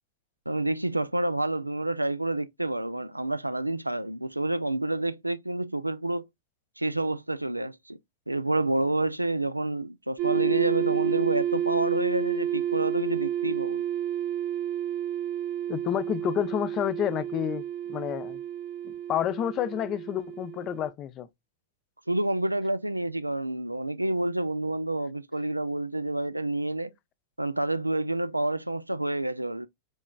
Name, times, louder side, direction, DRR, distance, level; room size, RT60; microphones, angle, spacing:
voice 1, 0.5-6.3 6.8-8.0 8.3-13.8 22.1-26.9 27.4-29.7, right 2 dB, 85° right, 0.3 m, -28 dB
sound 1, 10.2-20.9, right 10 dB, 40° right, 0.7 m, -30 dB
voice 2, 15.7-17.6 17.9-18.4 18.8-21.3, left 10 dB, 35° left, 0.5 m, -29 dB
6.3 x 3.1 x 2.2 m
figure-of-eight pair, 90°, 0 cm